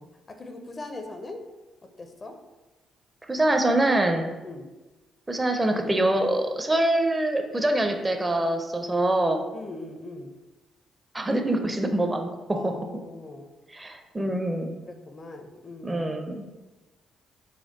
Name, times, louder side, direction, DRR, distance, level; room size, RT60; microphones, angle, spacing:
voice 1, 0.0-1.4 2.0-2.4 4.4-4.7 9.5-10.3 12.5-13.5 14.9-16.0, left 2 dB, 35° left, 5 dB, 0.5 m, -40 dB
voice 2, 3.3-4.3 5.3-9.4 11.1-12.7 13.7-14.7 15.8-16.4, right 1 dB, 20° right, 5 dB, 0.5 m, -24 dB
4.2 x 2.2 x 3.9 m, 1.1 s
hypercardioid pair, 45°, 0 cm